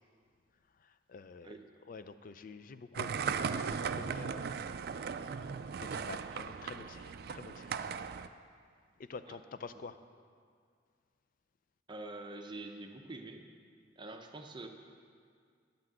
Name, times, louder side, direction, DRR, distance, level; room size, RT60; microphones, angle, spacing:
voice 1, 0.8-1.6 1.9-4.5 5.8-7.8 9.0-10.0, left 4 dB, 45° left, 11 dB, 0.4 m, -48 dB
sound 1, 2.9-8.3, right 6 dB, 50° right, 0.3 m, -37 dB
voice 2, 11.9-13.5 14.0-14.7, right 2 dB, 25° right, 4 dB, 0.7 m, -45 dB
10.0 x 6.0 x 7.8 m, 2.1 s
head